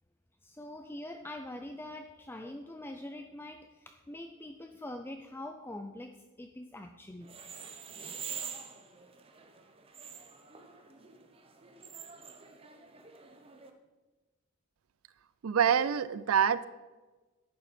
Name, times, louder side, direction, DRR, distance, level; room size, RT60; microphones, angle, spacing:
voice 1, 0.4-7.3, left 1 dB, 10° left, 6 dB, 0.4 m, -44 dB
sound 1, 7.2-13.7, right 7 dB, 25° right, 0.9 m, -46 dB
voice 2, 15.4-16.6, right 8 dB, 65° right, 15 dB, 0.4 m, -26 dB
11.0 x 8.6 x 4.2 m, 1.2 s
head